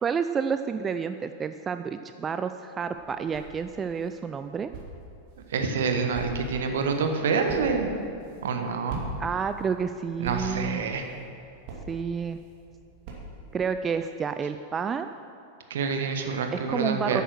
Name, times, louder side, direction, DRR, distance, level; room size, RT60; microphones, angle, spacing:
voice 1, 0.0-4.7 9.2-10.8 11.9-12.4 13.5-15.1 16.5-17.2, right 6 dB, 20° right, 9 dB, 0.4 m, -30 dB
sound 1, 2.8-13.7, right 2 dB, 45° right, 2.6 m, -43 dB
voice 2, 5.5-7.9 8.4-9.0 10.2-11.0 15.7-17.2, right 5 dB, 60° right, 5 dB, 1.2 m, -27 dB
10.5 x 9.1 x 6.3 m, 2.5 s
figure-of-eight pair, 90°, 0 cm